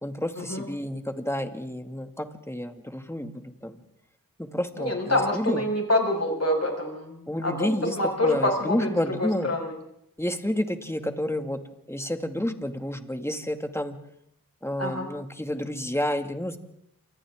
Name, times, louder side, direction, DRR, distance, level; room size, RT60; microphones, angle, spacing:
voice 1, 0.0-3.8 4.4-5.6 7.3-8.0 8.2-9.5 10.2-11.6 11.9-14.0 14.6-16.6, left 1 dB, 5° left, 6 dB, 2.1 m, -30 dB
voice 2, 4.8-7.7 8.0-9.8 14.8-15.1, left 1 dB, 45° left, 2 dB, 5.8 m, -26 dB
28.0 x 25.0 x 3.7 m, 0.77 s
wide cardioid pair, 50°, 35 cm